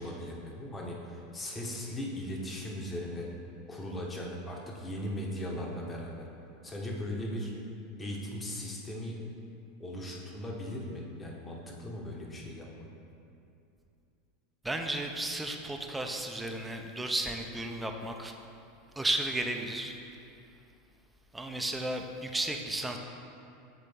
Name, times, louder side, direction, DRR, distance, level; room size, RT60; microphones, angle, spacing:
voice 1, 0.0-3.3 3.7-6.3 6.6-7.5 8.0-9.2 9.8-12.9, left 1 dB, 20° left, -1 dB, 1.0 m, -38 dB
voice 2, 14.6-18.3 19.0-19.9 21.3-23.0, right 1 dB, 10° right, 4 dB, 0.5 m, -33 dB
7.4 x 3.7 x 3.5 m, 2.6 s
hypercardioid pair, 90°, 0 cm